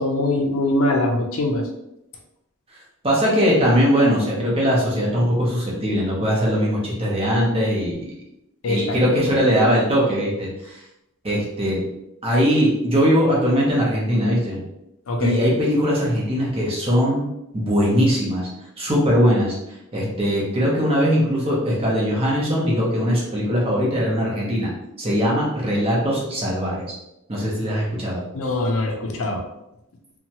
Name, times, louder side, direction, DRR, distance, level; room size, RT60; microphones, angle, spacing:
voice 1, 0.0-1.6 8.6-8.9 15.1-15.3 28.3-29.4, left 2 dB, 65° left, 2 dB, 0.5 m, -22 dB
voice 2, 3.0-8.1 8.7-10.8 11.2-11.8 12.2-14.6 15.2-17.2 17.5-18.5 18.8-19.6 19.9-24.7 25.0-26.9 27.3-28.2, equal, 25° right, -4 dB, 0.7 m, -20 dB
2.8 x 2.2 x 2.8 m, 0.87 s
head